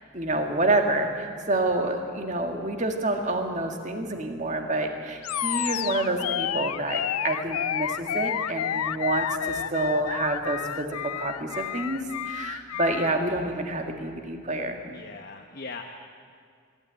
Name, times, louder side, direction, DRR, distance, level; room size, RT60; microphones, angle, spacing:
voice 1, 0.1-14.8, right 2 dB, 35° right, 4 dB, 1.9 m, -28 dB
Animal, 5.2-13.2, left 10 dB, 80° left, 0.5 m, -30 dB
voice 2, 14.9-15.8, left 4 dB, 40° left, 2 dB, 1.0 m, -39 dB
24.5 x 12.5 x 9.2 m, 2.2 s
head